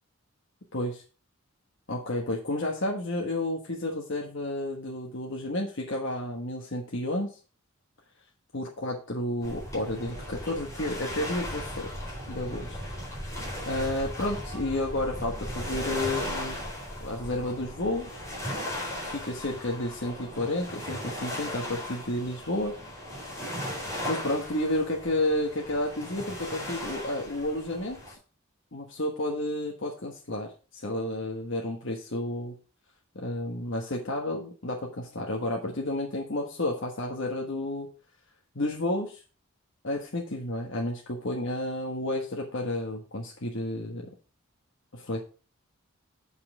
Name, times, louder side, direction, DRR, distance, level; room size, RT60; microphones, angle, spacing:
voice 1, 0.7-1.0 1.9-7.4 8.5-11.9 12.3-12.8 13.7-16.6 17.0-18.2 19.0-22.8 24.1-28.2 28.7-32.6 33.1-37.9 38.5-39.2 39.8-44.1 44.9-45.2, left 1 dB, 65° left, 0 dB, 1.3 m, -31 dB
sound 1, 9.4-28.1, left 1 dB, 15° left, 3.9 m, -37 dB
8.7 x 5.6 x 4.9 m, 0.36 s
head